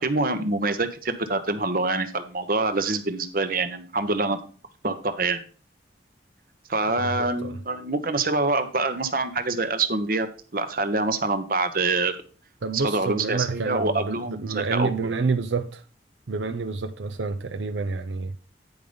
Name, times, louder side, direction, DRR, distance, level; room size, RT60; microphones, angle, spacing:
voice 1, 0.0-4.4 4.8-5.4 6.7-10.3 10.5-12.1 12.7-14.9, right 3 dB, 50° right, 1.0 m, -25 dB
voice 2, 7.0-7.6 12.6-15.8 16.3-18.4, right 4 dB, 90° right, 0.6 m, -28 dB
9.5 x 5.3 x 5.1 m
head